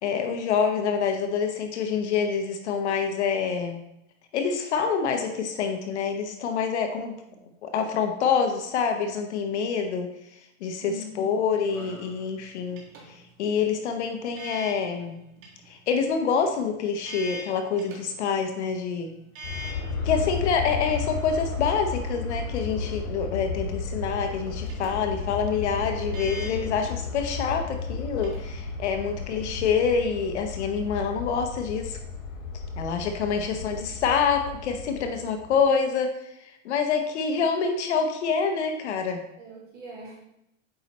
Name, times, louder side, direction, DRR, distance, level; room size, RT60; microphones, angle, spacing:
voice 1, 0.0-3.8 4.3-7.2 7.6-10.1 10.6-12.8 13.4-15.2 15.7-19.1 20.0-32.0 32.8-36.1 36.4-39.2, left 6 dB, 55° left, 5 dB, 0.7 m, -26 dB
voice 2, 7.1-7.6 10.8-11.2 20.1-20.5 28.9-29.3 37.3-37.4 39.4-40.2, right 1 dB, 25° right, -4 dB, 1.6 m, -44 dB
sound 1, 11.1-29.7, right 1 dB, 70° right, 1.9 m, -46 dB
Aircraft, 19.4-35.6, left 4 dB, 80° left, 2.2 m, -33 dB
8.7 x 4.1 x 3.0 m, 0.82 s
supercardioid pair, 175°, 41 cm